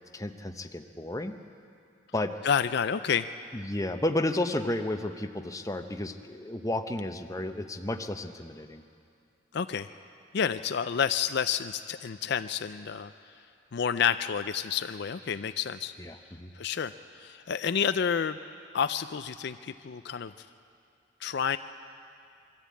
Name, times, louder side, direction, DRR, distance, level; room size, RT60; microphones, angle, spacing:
voice 1, 0.1-1.4 2.1-2.4 3.5-8.8 16.0-16.5, left 1 dB, 15° left, 7 dB, 0.7 m, -32 dB
voice 2, 2.4-3.3 9.5-9.9 10.3-13.1 13.7-15.9 16.5-18.4 18.7-20.5 21.2-21.6, left 7 dB, 60° left, 11 dB, 0.4 m, -29 dB
23.0 x 13.5 x 8.4 m, 2.4 s
head